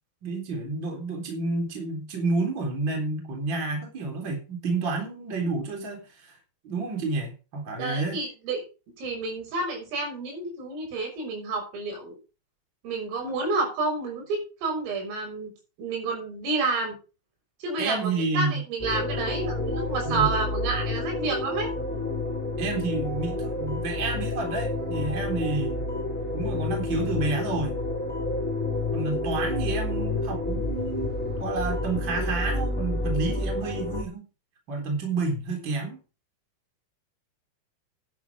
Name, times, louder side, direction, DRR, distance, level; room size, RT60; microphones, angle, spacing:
voice 1, 0.2-6.3 6.6-8.2 17.8-18.6 20.0-20.3 22.6-25.8 26.3-27.7 28.9-34.3 34.7-36.0, right 3 dB, 25° right, 2 dB, 3.9 m, -30 dB
voice 2, 7.8-8.6 9.0-12.2 12.8-15.5 15.8-17.0 17.6-21.7, right 3 dB, 85° right, 1 dB, 8.8 m, -30 dB
sound 1, 18.8-34.0, left 2 dB, ahead, 3.1 m, -29 dB
12.0 x 9.3 x 4.9 m, 0.33 s
omnidirectional pair, 5.7 m